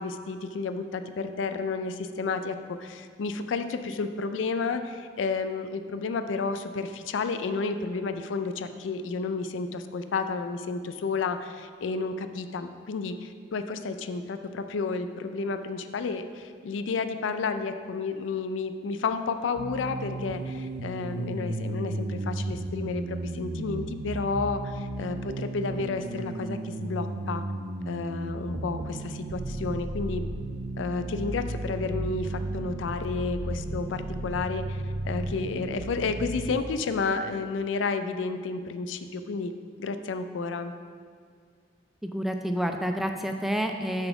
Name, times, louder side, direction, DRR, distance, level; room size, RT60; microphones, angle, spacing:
voice 1, 0.0-27.4 27.9-30.2 30.8-39.5 39.8-40.7, left 4 dB, 85° left, 9 dB, 0.4 m, -31 dB
sound 1, 19.6-36.5, right 2 dB, 70° right, 0.5 m, -34 dB
voice 2, 42.0-44.1, equal, ahead, 4 dB, 0.3 m, -29 dB
6.6 x 4.1 x 5.9 m, 2.1 s
head